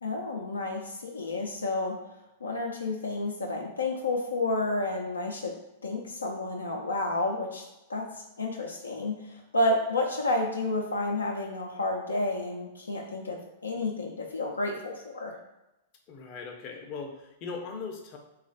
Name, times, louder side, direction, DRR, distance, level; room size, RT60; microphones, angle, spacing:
voice 1, 0.0-2.0 2.4-5.6 5.8-7.6 7.9-8.1 8.4-15.4, left 2 dB, 85° left, 0 dB, 0.5 m, -30 dB
voice 2, 16.1-18.2, left 4 dB, 45° left, 2 dB, 0.6 m, -39 dB
3.1 x 2.4 x 3.9 m, 0.92 s
figure-of-eight pair, 100°, 0 cm